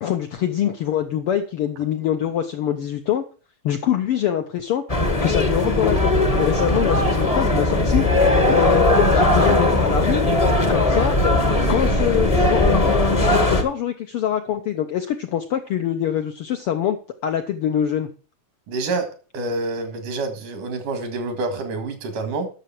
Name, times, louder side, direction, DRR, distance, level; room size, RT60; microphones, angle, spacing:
voice 1, 0.0-3.2 3.6-4.8 5.2-10.2 10.7-11.2 11.7-13.2 13.5-18.1, left 10 dB, 80° left, 7 dB, 1.2 m, -24 dB
sound 1, 4.9-13.6, left 2 dB, 30° left, 0.6 m, -18 dB
voice 2, 18.7-22.5, right 3 dB, 85° right, 8 dB, 3.4 m, -27 dB
11.5 x 6.9 x 5.9 m, 0.37 s
omnidirectional pair, 3.5 m